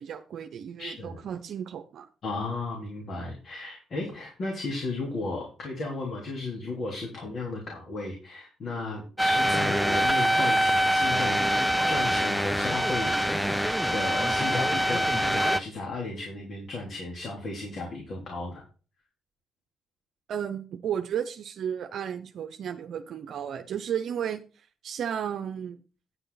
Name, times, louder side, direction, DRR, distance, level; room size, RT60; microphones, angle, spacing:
voice 1, 0.0-2.1 20.3-25.8, right 8 dB, 65° right, 7 dB, 0.7 m, -33 dB
voice 2, 0.8-1.2 2.2-13.6 13.9-18.6, left 3 dB, 55° left, -1 dB, 3.4 m, -35 dB
sound 1, 9.2-15.6, equal, ahead, 0.6 m, -24 dB
9.6 x 8.0 x 4.1 m, 0.37 s
cardioid pair, 90°, 0 cm